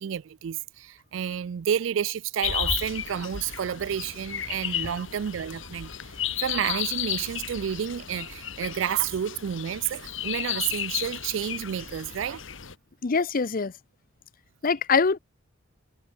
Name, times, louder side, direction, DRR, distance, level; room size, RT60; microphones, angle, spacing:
voice 1, 0.0-5.9 6.4-12.4, right 9 dB, 70° right, 0.4 m, -30 dB
sound 1, 2.4-12.7, left 10 dB, 70° left, 2.6 m, -33 dB
voice 2, 13.0-13.7 14.6-15.2, left 5 dB, 45° left, 0.6 m, -23 dB
head